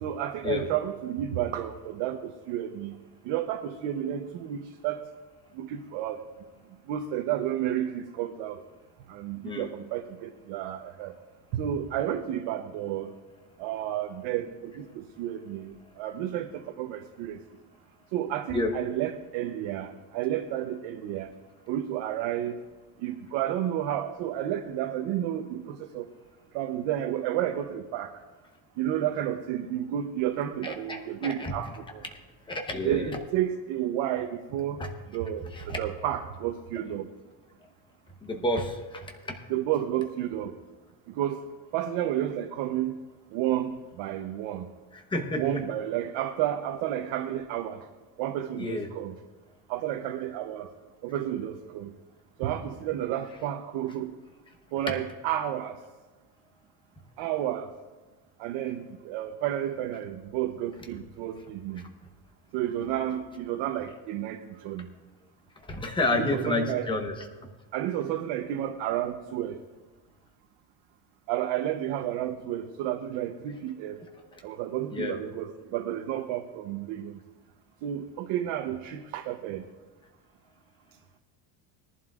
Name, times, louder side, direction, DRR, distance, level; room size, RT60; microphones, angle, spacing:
voice 1, 0.0-2.9 3.2-5.1 5.5-6.2 6.9-8.6 9.1-11.2 11.5-13.1 13.6-17.4 18.1-21.3 21.7-22.6 23.0-26.1 26.5-28.1 28.8-32.0 32.8-34.8 35.1-37.1 39.5-40.5 41.1-41.4 41.7-43.0 43.3-44.7 45.3-47.9 48.2-49.1 49.7-50.7 51.0-51.9 52.4-54.1 54.7-55.8 57.2-57.7 58.4-61.8 62.5-64.9 66.0-66.9 67.7-69.6 71.3-74.0 74.4-77.2 77.8-79.6, right 11 dB, 80° right, 4 dB, 0.9 m, -31 dB
voice 2, 30.6-31.5 32.5-33.1 35.5-35.8 38.2-39.3 44.9-45.6 48.6-48.9 65.7-67.1 74.9-75.2, left 2 dB, 10° left, 3 dB, 0.9 m, -30 dB
21.0 x 11.0 x 2.4 m, 1.2 s
cardioid pair, 180°, 44 cm